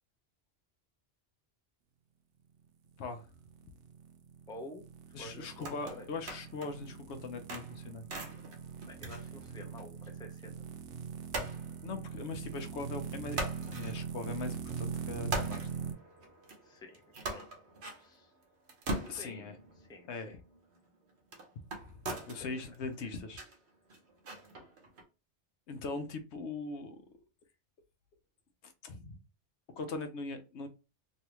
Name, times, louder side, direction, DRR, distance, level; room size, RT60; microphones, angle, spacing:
sound 1, 3.1-15.9, right 6 dB, 90° right, 0.9 m, -42 dB
voice 1, 4.5-4.8 5.2-6.1 8.9-10.6 16.6-17.0 17.3-17.5 18.0-18.3 19.2-19.6 19.9-20.4 22.4-22.6, left 1 dB, 5° left, 0.5 m, -49 dB
voice 2, 5.1-8.0 11.8-15.7 19.1-19.6 20.1-20.4 21.8-21.9 22.2-23.4 25.7-27.0 28.6-29.2 29.8-30.7, left 3 dB, 80° left, 0.9 m, -40 dB
sound 2, 5.5-6.9 7.2-10.1 10.3-10.4 11.3-12.7 13.0-14.7 15.1-25.0, right 2 dB, 70° right, 1.1 m, -42 dB
3.2 x 2.7 x 2.9 m
omnidirectional pair, 1.2 m